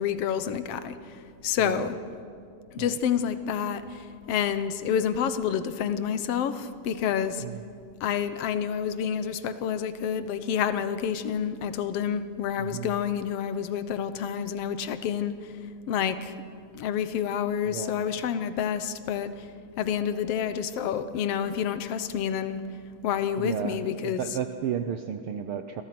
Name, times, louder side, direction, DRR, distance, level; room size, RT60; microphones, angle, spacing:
voice 1, 0.0-1.9 2.7-7.4 8.0-15.5 15.9-16.3 16.7-19.5 19.8-22.6 23.0-24.2, left 8 dB, 65° left, 11 dB, 1.7 m, -29 dB
voice 2, 12.6-12.9 17.6-18.1 23.4-25.8, right 8 dB, 75° right, 8 dB, 1.2 m, -33 dB
28.5 x 22.5 x 6.0 m, 2.4 s
omnidirectional pair, 3.5 m